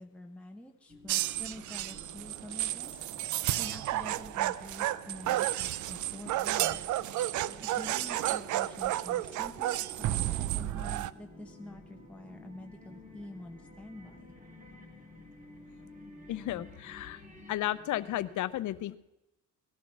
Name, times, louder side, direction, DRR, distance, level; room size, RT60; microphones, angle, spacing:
voice 1, 0.0-3.0 3.3-6.9 7.6-14.2, left 1 dB, 5° left, 2 dB, 1.1 m, -47 dB
sound 1, 0.9-18.4, left 1 dB, 25° right, 3.9 m, -53 dB
sound 2, 1.1-11.1, right 14 dB, 75° right, 0.5 m, -32 dB
voice 2, 16.3-17.2 17.5-19.0, left 14 dB, 75° left, 17 dB, 0.7 m, -33 dB
18.0 x 11.0 x 6.1 m, 0.97 s
cardioid pair, 90°, 30 cm